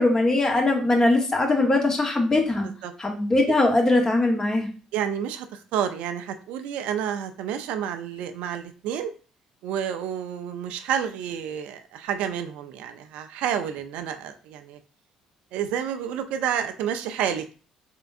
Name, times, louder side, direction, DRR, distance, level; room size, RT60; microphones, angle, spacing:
voice 1, 0.0-2.7 3.0-4.7, left 2 dB, 30° left, 2 dB, 1.1 m, -21 dB
voice 2, 4.9-9.1 9.6-14.8 15.5-17.5, right 9 dB, 75° right, 8 dB, 0.4 m, -29 dB
3.7 x 3.4 x 2.5 m, 0.37 s
hypercardioid pair, 60°, 2 cm